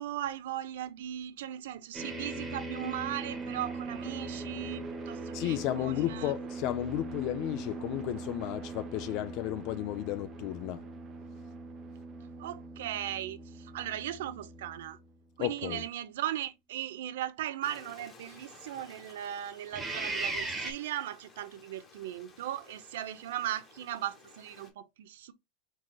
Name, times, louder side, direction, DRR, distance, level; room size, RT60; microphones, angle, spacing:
voice 1, 0.0-6.3 12.4-15.0 15.4-25.3, right 12 dB, 75° right, 0.6 m, -38 dB
sound 1, 1.9-15.0 19.7-20.7, right 3 dB, 10° right, 1.0 m, -40 dB
sound 2, 2.7-14.9, right 7 dB, 25° right, 0.5 m, -52 dB
voice 2, 5.3-10.9 15.4-15.8, left 15 dB, 45° left, 0.4 m, -33 dB
Stream, 17.6-24.7, left 4 dB, 20° left, 1.1 m, -56 dB
4.9 x 4.0 x 2.2 m
supercardioid pair, 155°, 0 cm